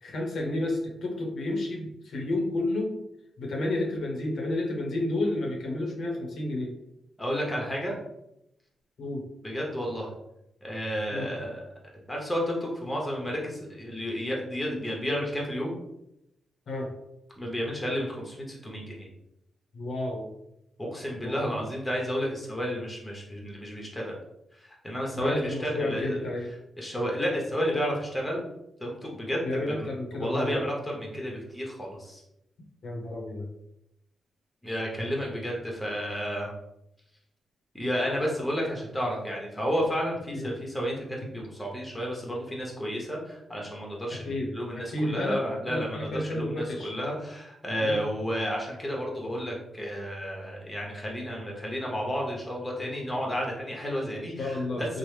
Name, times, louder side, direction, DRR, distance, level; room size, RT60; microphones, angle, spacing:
voice 1, 0.0-2.9 3.4-6.7 9.0-9.2 11.1-11.3 16.7-16.9 19.7-20.3 21.2-21.6 25.2-26.5 29.4-30.6 32.8-33.5 40.3-40.5 44.2-45.4 45.7-46.9 47.8-48.0 54.4-55.0, left 1 dB, 70° left, 0 dB, 0.6 m, -31 dB
voice 2, 7.2-7.9 9.4-10.1 10.6-11.6 12.1-15.7 17.4-19.1 20.8-24.2 24.6-26.3 26.8-28.5 28.8-32.2 34.6-36.5 37.7-55.0, equal, 10° left, -2 dB, 0.8 m, -31 dB
3.0 x 2.0 x 3.2 m, 0.84 s
cardioid pair, 90°, 0 cm